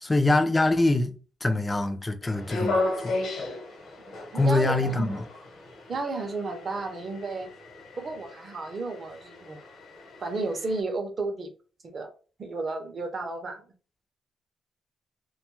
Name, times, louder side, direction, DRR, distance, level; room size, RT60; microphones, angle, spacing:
voice 1, 0.0-1.1 1.4-3.2 4.3-5.2, left 2 dB, 15° left, 0.4 m, -24 dB
sound 1, 2.2-10.8, left 2 dB, 60° left, 0.9 m, -35 dB
voice 2, 4.3-5.2 5.9-7.5 8.0-9.6 10.2-11.5 11.9-12.1 12.4-13.6, right 3 dB, 35° right, 0.6 m, -32 dB
2.6 x 2.2 x 3.0 m
cardioid pair, 160°, 0 cm